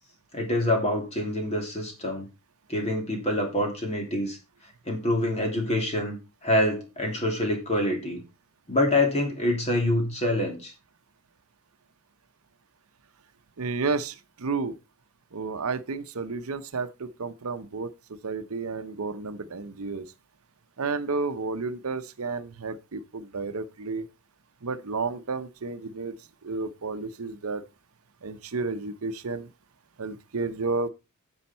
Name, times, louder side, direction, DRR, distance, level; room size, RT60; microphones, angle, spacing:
voice 1, 0.3-2.3 2.7-4.4 4.9-6.2 6.4-8.2 8.7-10.7, left 1 dB, 30° left, 2.9 m, -26 dB
voice 2, 13.6-14.7 15.3-17.9 18.2-20.0 20.8-24.1 24.6-26.1 26.4-27.6 28.2-29.5 30.0-30.9, right 4 dB, 75° right, 0.8 m, -31 dB
9.8 x 7.1 x 4.3 m
head